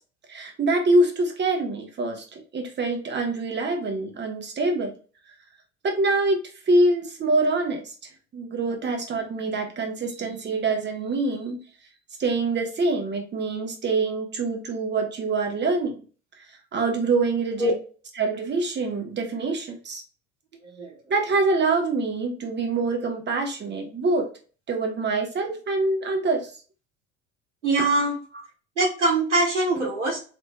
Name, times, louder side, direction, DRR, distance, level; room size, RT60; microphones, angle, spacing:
voice 1, 0.3-4.9 5.8-6.4 6.7-7.9 8.3-11.6 12.2-16.0 16.7-17.7 18.1-20.0 21.1-24.3 24.7-26.5, right 3 dB, 30° right, 3 dB, 1.3 m, -25 dB
voice 2, 27.6-28.2 28.8-30.2, right 2 dB, 85° right, -5 dB, 1.2 m, -22 dB
4.0 x 3.3 x 2.2 m, 0.38 s
hypercardioid pair, 65°, 34 cm